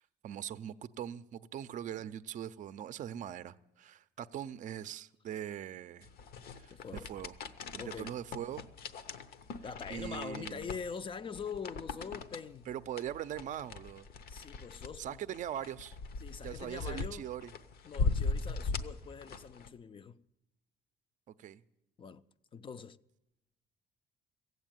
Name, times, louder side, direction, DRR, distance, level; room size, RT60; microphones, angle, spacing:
voice 1, 0.2-6.1 6.5-6.7 7.1-7.3 7.7-8.6 9.9-10.7 12.7-14.1 15.0-16.0 16.4-17.5 21.4-21.6, right 10 dB, 50° right, 0.5 m, -41 dB
sound 1, 6.0-19.7, left 4 dB, 65° left, 0.8 m, -39 dB
voice 2, 6.7-7.1 7.8-8.2 9.6-12.7 14.3-15.2 16.2-17.3 17.8-20.2 22.0-22.2 22.5-23.0, left 6 dB, 30° left, 0.4 m, -44 dB
16.0 x 8.0 x 9.1 m
cardioid pair, 110°, 17 cm